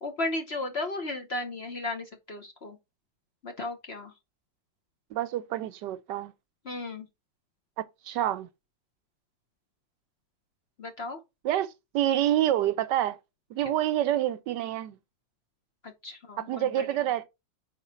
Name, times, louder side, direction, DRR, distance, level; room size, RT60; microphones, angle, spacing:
voice 1, 0.0-2.8 3.4-4.1 6.6-7.1 10.8-11.2 13.6-13.8 15.8-17.0, left 2 dB, 45° left, 1.0 m, -35 dB
voice 2, 5.1-6.3 7.8-8.5 11.4-13.2 13.5-15.0 16.4-17.3, right 12 dB, 75° right, 1.1 m, -27 dB
5.4 x 4.3 x 5.6 m
omnidirectional pair, 2.0 m